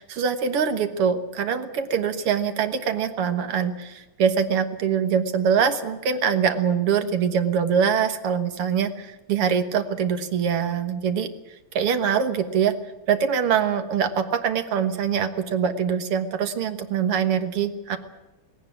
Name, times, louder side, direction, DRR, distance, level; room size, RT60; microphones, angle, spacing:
voice 1, 0.0-11.3 11.7-12.7 13.1-18.0, right 7 dB, 90° right, 8 dB, 2.4 m, -23 dB
19.0 x 17.5 x 9.4 m, 1.0 s
omnidirectional pair, 2.4 m